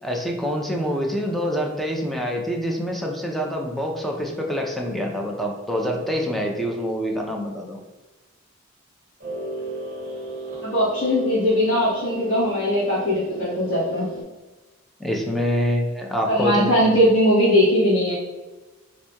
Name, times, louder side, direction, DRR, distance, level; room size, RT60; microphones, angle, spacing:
voice 1, 0.0-7.8 15.0-16.9, equal, ahead, 0 dB, 0.4 m, -26 dB
sound 1, 9.2-14.2, right 2 dB, 40° right, 1.2 m, -34 dB
voice 2, 10.6-14.1 16.2-18.1, equal, 80° left, -10 dB, 1.1 m, -20 dB
4.2 x 2.6 x 2.2 m, 1.2 s
head